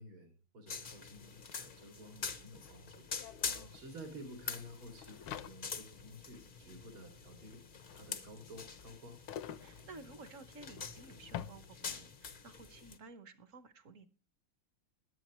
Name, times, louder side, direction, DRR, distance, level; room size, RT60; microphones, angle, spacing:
voice 1, 0.0-3.1 3.7-7.6 7.9-9.2, equal, 70° right, 3 dB, 3.4 m, -52 dB
sound 1, 0.7-13.0, left 5 dB, 50° left, 0.6 m, -46 dB
sound 2, 1.5-1.6 1.8-12.2, left 10 dB, 80° left, 1.6 m, -50 dB
voice 2, 9.6-14.1, right 3 dB, 45° right, 11 dB, 1.2 m, -54 dB
21.0 x 8.3 x 3.1 m, 0.34 s
omnidirectional pair, 2.3 m